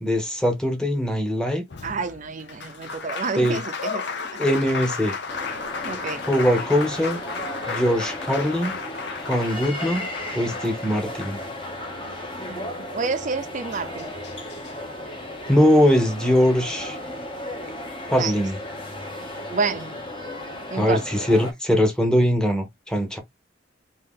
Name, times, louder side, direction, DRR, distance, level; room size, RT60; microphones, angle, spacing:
voice 1, 0.0-1.6 3.4-3.6 4.4-5.1 6.2-7.2 7.7-8.7 9.3-10.0 10.3-11.4 15.5-17.0 18.1-18.6 20.8-23.2, equal, 5° left, 0.9 m, -21 dB
Applause, 1.7-12.0 13.3-13.4 13.7-14.7, left 5 dB, 60° left, 0.6 m, -34 dB
voice 2, 1.8-4.0 5.8-6.2 12.5-14.1 18.2-18.3 19.5-20.0 20.7-21.0, right 4 dB, 40° right, 0.5 m, -29 dB
sound 1, 5.3-21.5, left 1 dB, 25° left, 0.8 m, -35 dB
2.9 x 2.8 x 3.6 m
head